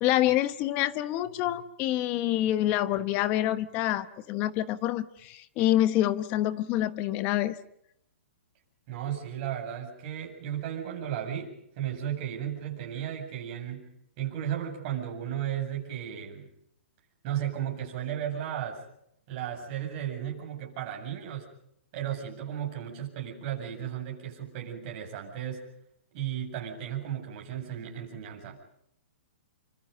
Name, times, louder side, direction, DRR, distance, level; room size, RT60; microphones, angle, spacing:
voice 1, 0.0-7.6, left 13 dB, 25° left, 13 dB, 1.1 m, -27 dB
voice 2, 8.9-13.9 14.2-16.5 17.2-18.8 19.3-21.5 21.9-25.7 26.1-28.7, right 10 dB, 35° right, 1 dB, 7.9 m, -35 dB
29.0 x 25.0 x 5.4 m, 0.75 s
hypercardioid pair, 165°, 7 cm